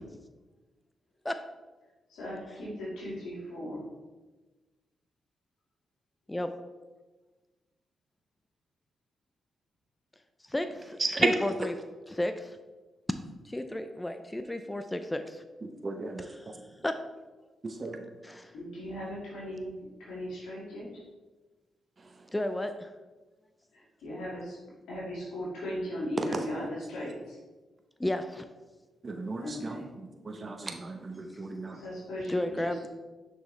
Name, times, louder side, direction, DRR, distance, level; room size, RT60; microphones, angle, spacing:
voice 1, 2.1-3.8 18.5-19.7 20.0-21.0 23.7-24.6 24.9-27.4 29.4-29.9 31.7-32.9, equal, 80° left, -7 dB, 2.1 m, -38 dB
voice 2, 10.5-11.8 12.1-12.6 13.4-15.4 16.2-16.5 16.8-16.9 18.2-18.5 22.3-22.9 28.0-28.4 31.3-31.4 32.3-32.9, left 1 dB, 15° left, 8 dB, 0.5 m, -33 dB
voice 3, 15.8-16.3 17.6-18.0 29.0-29.8 30.3-31.8, right 3 dB, 40° right, 5 dB, 0.8 m, -36 dB
6.2 x 5.1 x 3.2 m, 1.2 s
hypercardioid pair, 40°, 0 cm